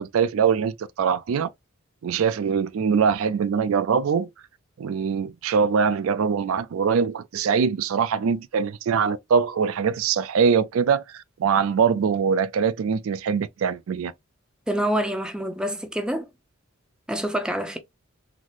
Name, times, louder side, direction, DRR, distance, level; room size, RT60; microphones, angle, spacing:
voice 1, 0.0-1.5 2.0-4.3 4.8-14.1, right 6 dB, 75° right, 0.4 m, -23 dB
voice 2, 14.7-16.3 17.1-17.8, right 1 dB, 5° right, 0.4 m, -26 dB
3.9 x 2.0 x 3.0 m
head